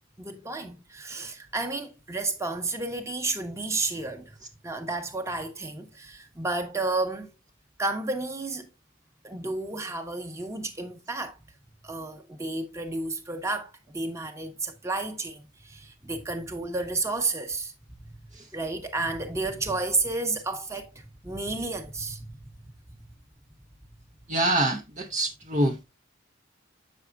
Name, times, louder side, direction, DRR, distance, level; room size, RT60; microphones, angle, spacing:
voice 1, 0.2-4.4 4.6-7.3 7.8-8.7 9.2-11.4 11.8-17.7 18.0-18.1 18.5-22.4, right 3 dB, 15° right, 1.1 m, -31 dB
voice 2, 24.3-25.8, right 1 dB, 40° right, 0.8 m, -25 dB
8.2 x 6.4 x 2.4 m
head